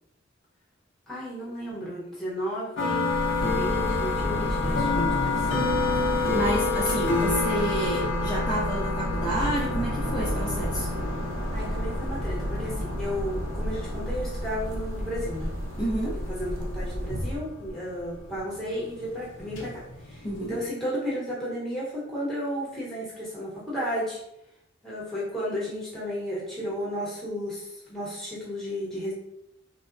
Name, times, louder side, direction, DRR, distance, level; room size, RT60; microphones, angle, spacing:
voice 1, 1.1-3.1 3.6-5.5 7.1-7.3 11.5-15.5 16.0-24.2 24.8-29.1, equal, ahead, -8 dB, 0.9 m, -33 dB
sound 1, 2.8-20.6, left 3 dB, 70° left, 0.6 m, -30 dB
sound 2, 3.1-17.4, equal, 75° right, 0.5 m, -31 dB
voice 2, 5.9-10.9 15.8-16.2 20.2-20.6, right 1 dB, 20° left, -6 dB, 0.4 m, -30 dB
3.3 x 2.0 x 2.5 m, 0.81 s
head